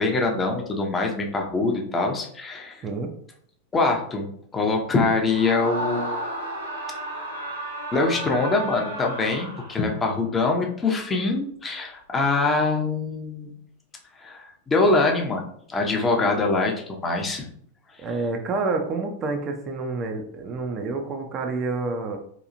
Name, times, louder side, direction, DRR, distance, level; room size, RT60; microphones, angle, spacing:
voice 1, 0.0-2.8 3.7-4.2 4.5-6.2 7.9-13.5 14.2-17.4, left 3 dB, 20° left, 1 dB, 0.6 m, -24 dB
Screaming, 5.2-10.1, right 1 dB, 80° right, 0.8 m, -33 dB
voice 2, 18.0-22.2, right 3 dB, 30° right, 4 dB, 0.4 m, -28 dB
2.9 x 2.3 x 2.5 m, 0.63 s
figure-of-eight pair, 90°, 0 cm